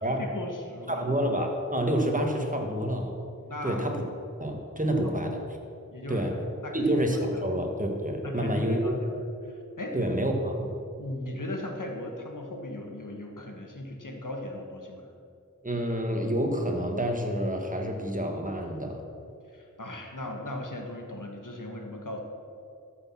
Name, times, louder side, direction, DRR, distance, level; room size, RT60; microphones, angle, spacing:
voice 1, 0.2-1.1 3.5-3.9 4.9-5.1 5.9-6.3 6.6-6.9 7.3-7.4 8.2-9.2 9.4-10.3 11.0-15.0 19.5-22.2, left 1 dB, 85° left, 1 dB, 1.5 m, -37 dB
voice 2, 0.9-3.2 3.6-4.0 4.4-5.4 6.1-6.4 6.7-8.9 9.9-10.7 15.6-19.0, right 1 dB, 25° right, 2 dB, 1.7 m, -28 dB
13.5 x 6.3 x 6.0 m, 2.5 s
wide cardioid pair, 40°, 31 cm